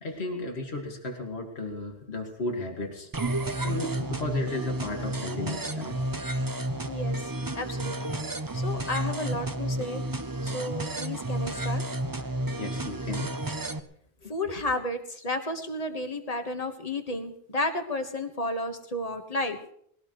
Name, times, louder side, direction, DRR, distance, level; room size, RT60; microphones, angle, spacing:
voice 1, 0.0-3.1 3.6-6.0 12.6-13.3, left 2 dB, 75° left, 2 dB, 2.3 m, -34 dB
sound 1, 3.1-13.8, right 1 dB, 25° right, 0.7 m, -31 dB
voice 2, 6.9-8.2 8.5-10.0 10.4-11.8 14.3-19.6, left 1 dB, 35° left, 7 dB, 1.6 m, -32 dB
21.5 x 17.5 x 3.2 m, 0.68 s
omnidirectional pair, 1.1 m